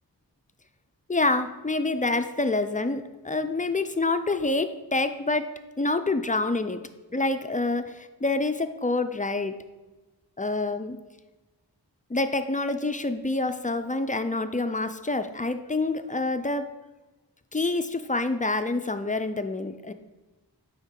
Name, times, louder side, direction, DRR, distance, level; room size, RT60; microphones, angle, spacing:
voice 1, 1.1-5.5 5.8-6.8 7.1-9.6 10.4-11.0 12.1-16.7 17.5-19.9, left 2 dB, 20° left, 10 dB, 0.3 m, -27 dB
9.5 x 3.6 x 3.8 m, 1.2 s
wide cardioid pair, 45°, 43 cm